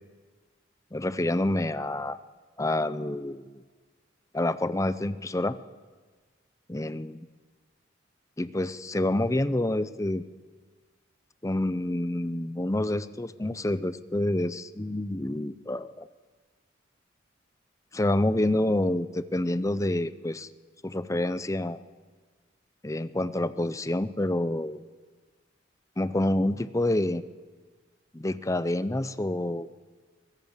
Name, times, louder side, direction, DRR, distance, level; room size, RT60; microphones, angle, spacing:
voice 1, 0.9-2.2 2.6-3.6 4.3-5.6 6.7-7.3 8.4-10.2 11.4-16.1 17.9-20.5 20.8-21.8 22.8-24.8 26.0-27.2 28.1-29.7, left 1 dB, 15° left, 14 dB, 0.6 m, -28 dB
23.0 x 16.0 x 7.5 m, 1.4 s
head